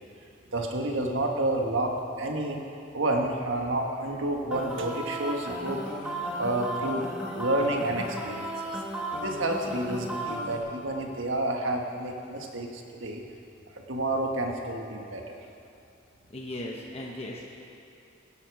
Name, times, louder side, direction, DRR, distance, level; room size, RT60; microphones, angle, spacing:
voice 1, 0.5-2.6 2.9-5.8 6.4-8.8 9.2-13.2 13.7-15.5, right 1 dB, 70° right, 2 dB, 1.5 m, -30 dB
sound 1, 4.5-10.6, right 1 dB, 5° right, 1.5 m, -35 dB
voice 2, 16.3-17.5, left 1 dB, 30° left, -2 dB, 1.0 m, -37 dB
17.0 x 11.0 x 4.8 m, 2.6 s
head